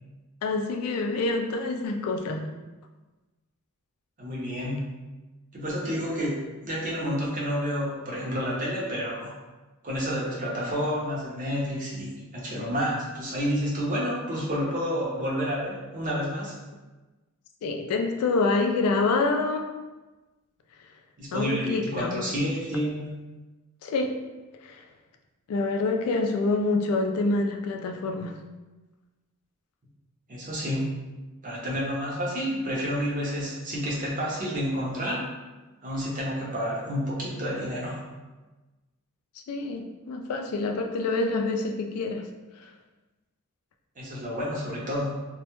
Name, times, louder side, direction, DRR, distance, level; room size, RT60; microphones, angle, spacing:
voice 1, 0.4-2.5 17.6-19.7 21.3-22.2 23.8-24.1 24.6-24.8 25.5-28.3 39.5-42.3 42.6-42.7, left 3 dB, 80° left, 4 dB, 0.3 m, -26 dB
voice 2, 4.2-4.8 5.5-9.3 9.8-16.5 21.2-23.1 30.3-31.0 31.4-35.2 35.8-38.0 44.0-45.1, equal, 35° right, -4 dB, 0.6 m, -29 dB
2.1 x 2.0 x 2.9 m, 1.2 s
head